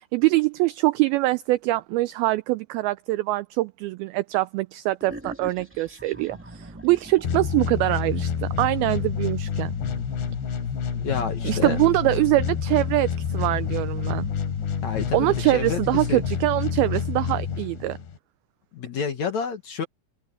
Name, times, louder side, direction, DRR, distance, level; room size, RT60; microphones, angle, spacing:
voice 1, 0.0-9.8 11.4-14.3 15.1-18.0, right 19 dB, 85° right, 2.1 m, -24 dB
sound 1, 5.0-8.1, right 1 dB, 5° right, 1.0 m, -42 dB
sound 2, 7.2-18.2, left 7 dB, 90° left, 5.4 m, -28 dB
voice 2, 11.0-11.8 14.8-16.2 18.7-19.9, left 6 dB, 60° left, 2.1 m, -29 dB
open air
omnidirectional pair, 4.9 m